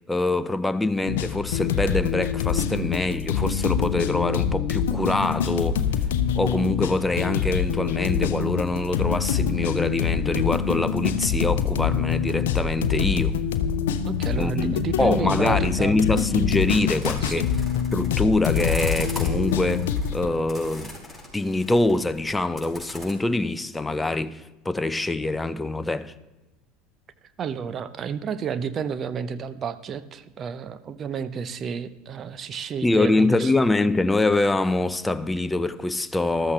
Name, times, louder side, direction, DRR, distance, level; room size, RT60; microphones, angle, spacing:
voice 1, 0.1-5.8 6.3-13.4 14.4-17.5 17.9-20.9 21.3-26.1 32.8-36.5, left 2 dB, 10° left, 0.6 m, -24 dB
sound 1, 1.1-20.3, left 8 dB, 70° left, 0.7 m, -25 dB
voice 2, 14.1-16.0 17.2-17.4 27.4-33.5, right 7 dB, 35° right, 0.8 m, -31 dB
sound 2, 17.0-23.1, left 1 dB, 5° right, 5.0 m, -40 dB
13.5 x 13.5 x 3.3 m
figure-of-eight pair, 70°, 0 cm